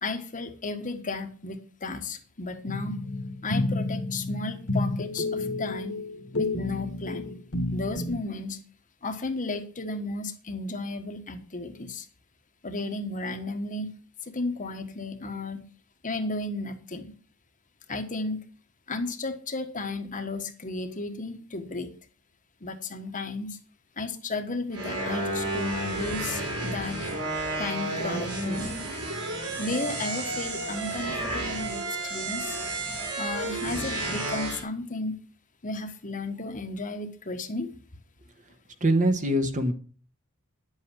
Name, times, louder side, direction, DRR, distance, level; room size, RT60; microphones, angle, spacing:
voice 1, 0.0-3.0 3.4-6.0 6.3-7.3 7.7-8.6 9.0-12.1 12.6-13.9 14.2-15.6 16.0-17.1 17.9-18.4 18.9-21.9 22.6-23.6 24.0-27.0 27.6-28.8 29.6-32.6 33.2-35.2 35.6-37.7, left 3 dB, 35° left, 6 dB, 1.4 m, -34 dB
sound 1, 2.7-8.2, left 2 dB, 60° left, 1.8 m, -30 dB
sound 2, 24.7-34.6, right 2 dB, 75° right, 5.2 m, -31 dB
voice 2, 38.8-39.7, right 1 dB, 35° right, 7 dB, 1.4 m, -23 dB
10.5 x 8.2 x 6.2 m, 0.40 s
head